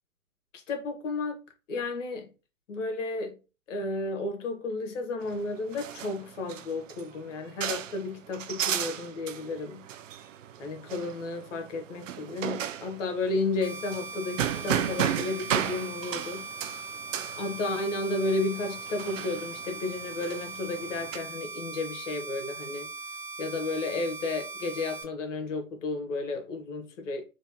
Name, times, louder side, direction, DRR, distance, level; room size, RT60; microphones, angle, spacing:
voice 1, 0.5-1.4 1.7-2.3 2.7-3.4 3.7-9.8 10.6-16.5 17.4-22.9 23.4-27.2, left 2 dB, 60° left, 1.4 m, -32 dB
sound 1, 5.2-21.2, right 10 dB, 60° right, 0.5 m, -35 dB
sound 2, 13.6-25.0, right 4 dB, 35° right, 1.4 m, -40 dB
3.4 x 3.0 x 2.9 m
figure-of-eight pair, 115°, 43 cm